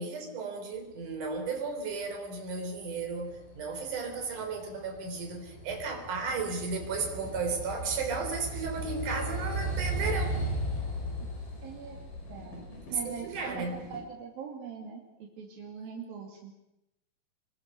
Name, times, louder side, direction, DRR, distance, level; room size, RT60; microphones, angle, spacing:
voice 1, 0.0-10.4 12.9-13.7, right 4 dB, 60° right, 4 dB, 5.3 m, -34 dB
sound 1, 2.6-14.0, right 1 dB, 65° left, 6.8 m, -37 dB
voice 2, 11.6-12.0 12.3-16.5, right 6 dB, 80° right, 0 dB, 4.4 m, -42 dB
27.5 x 22.0 x 6.7 m, 0.91 s
omnidirectional pair, 4.1 m